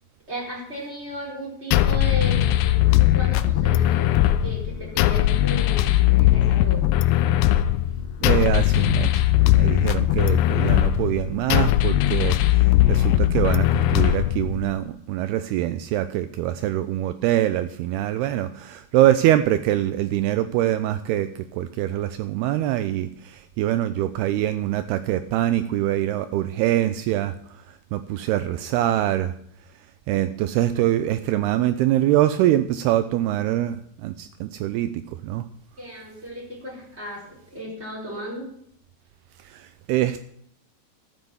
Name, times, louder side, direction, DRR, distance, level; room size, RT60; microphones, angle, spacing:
voice 1, 0.3-7.0 35.8-38.5, right 1 dB, 15° right, -4 dB, 4.4 m, -36 dB
sound 1, 1.7-14.7, left 14 dB, 85° left, 2.7 m, -19 dB
voice 2, 8.2-9.2 9.6-12.6 12.9-27.3 27.9-29.3 30.1-35.4 39.5-40.2, right 13 dB, 80° right, 11 dB, 2.4 m, -24 dB
13.5 x 7.7 x 7.0 m, 0.68 s
omnidirectional pair, 5.0 m